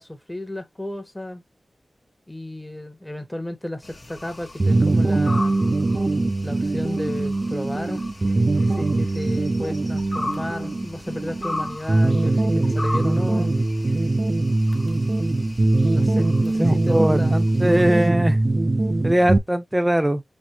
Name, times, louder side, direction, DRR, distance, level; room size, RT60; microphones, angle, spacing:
voice 1, 0.0-1.4 2.3-5.6 6.4-8.0 8.7-13.5 15.9-17.4, left 1 dB, 15° left, 1.1 m, -33 dB
sound 1, 3.8-18.1, left 2 dB, 40° left, 1.0 m, -37 dB
sound 2, 4.6-19.4, right 2 dB, 45° right, 0.5 m, -22 dB
voice 2, 16.5-18.4 19.0-20.2, right 1 dB, 15° right, 0.7 m, -21 dB
4.4 x 2.8 x 2.9 m
cardioid pair, 45°, 0 cm